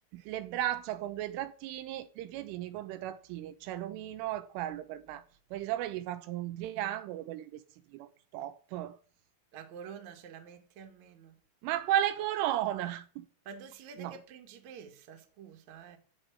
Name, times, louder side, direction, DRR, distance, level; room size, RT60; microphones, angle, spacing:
voice 1, 0.1-5.2 5.5-7.6 7.9-9.0 11.6-13.3 14.0-14.1, right 12 dB, 85° right, 3.4 m, -35 dB
voice 2, 9.5-11.4 13.4-16.0, right 6 dB, 50° right, 2.5 m, -48 dB
15.5 x 5.5 x 8.6 m
omnidirectional pair, 5.7 m